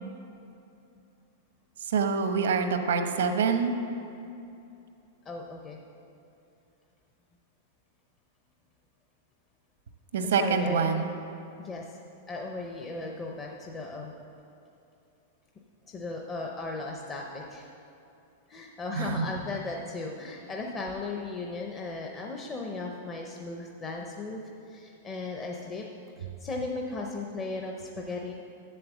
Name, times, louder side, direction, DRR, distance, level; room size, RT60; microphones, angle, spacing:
voice 1, 1.8-3.7 10.1-11.1 18.9-19.3, right 5 dB, 90° right, 7 dB, 0.9 m, -26 dB
voice 2, 5.3-5.8 10.2-11.0 11.6-12.0 12.3-14.1 15.9-17.7 18.5-25.9 26.2-28.3, left 3 dB, 15° left, 0 dB, 0.5 m, -36 dB
7.7 x 7.4 x 7.1 m, 2.6 s
supercardioid pair, 180°, 0 cm